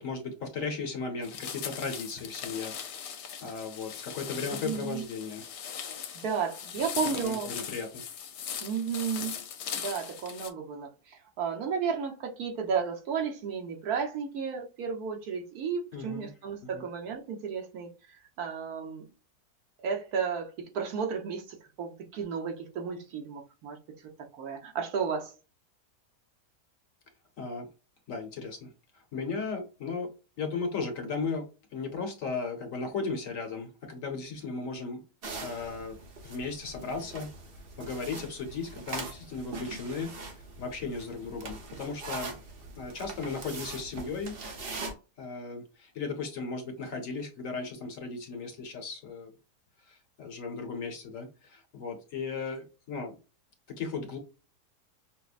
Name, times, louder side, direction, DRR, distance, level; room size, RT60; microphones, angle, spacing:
voice 1, 0.0-2.7 3.4-5.5 7.1-8.0 15.9-16.3 16.6-16.8 27.4-27.7 28.1-30.1 30.4-31.4 31.7-35.0 35.4-36.0 36.2-37.3 37.8-40.1 40.6-42.3 42.8-44.4 45.2-49.3 49.9-53.2 53.7-54.2, left 4 dB, 60° left, 1.1 m, -36 dB
sound 1, 1.2-10.5, left 8 dB, 80° left, 1.2 m, -39 dB
voice 2, 4.4-5.0 6.1-7.5 8.6-9.3 9.8-17.9 18.4-19.1 19.8-23.8 24.3-25.3, right 6 dB, 65° right, 1.2 m, -33 dB
sound 2, 35.2-44.9, right 3 dB, 45° right, 0.8 m, -42 dB
5.7 x 2.0 x 2.4 m
omnidirectional pair, 1.8 m